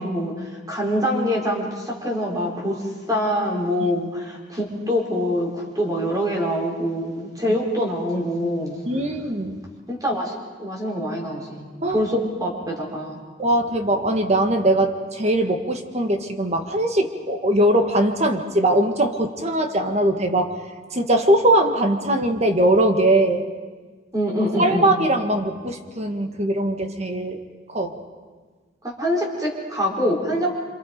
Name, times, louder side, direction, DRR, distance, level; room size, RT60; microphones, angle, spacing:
voice 1, 0.0-2.8 3.1-8.8 9.9-10.3 10.6-11.7 11.9-13.2 24.1-24.9 28.8-30.5, equal, 20° right, -1 dB, 4.6 m, -24 dB
voice 2, 8.8-9.6 11.8-12.0 13.4-20.5 20.9-23.5 24.6-27.4 27.7-28.0, right 1 dB, 35° right, 5 dB, 1.6 m, -21 dB
27.0 x 26.5 x 5.2 m, 1.4 s
head